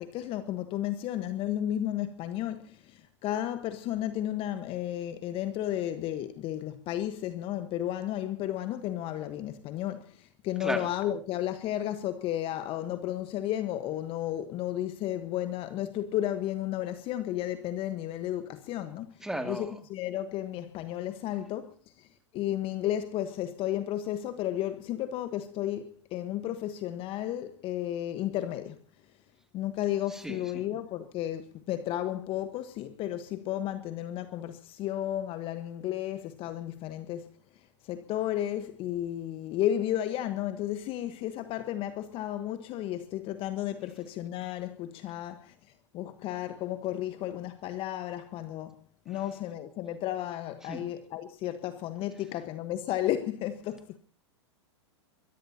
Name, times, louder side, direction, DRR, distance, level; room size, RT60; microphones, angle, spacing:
voice 1, 0.0-22.1 22.3-28.8 29.5-37.3 37.8-45.5 45.9-48.8 49.1-54.0, left 12 dB, 35° left, 1.2 m, -33 dB
voice 2, 19.2-19.7 30.1-30.6 49.1-49.2 50.7-50.8, right 1 dB, 5° right, 2.5 m, -35 dB
23.5 x 21.5 x 2.8 m
hypercardioid pair, 110°, 15 cm